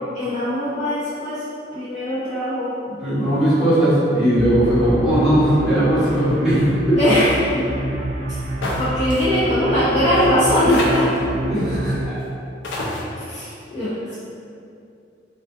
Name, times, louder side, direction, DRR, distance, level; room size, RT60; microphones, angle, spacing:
voice 1, 0.1-1.4 1.7-2.7 7.0-7.6 8.8-11.1 13.3-14.1, left 1 dB, 35° left, -15 dB, 0.6 m, -20 dB
voice 2, 2.9-7.0 11.5-12.2, right 1 dB, ahead, -14 dB, 1.2 m, -18 dB
sound 1, 4.3-12.0, right 1 dB, 65° right, 0.4 m, -27 dB
sound 2, 8.6-8.8 9.1-9.2 10.1-10.2 10.7-11.2 12.2-12.3 12.6-13.0, left 2 dB, 85° left, 0.5 m, -26 dB
2.4 x 2.4 x 2.5 m, 2.5 s
head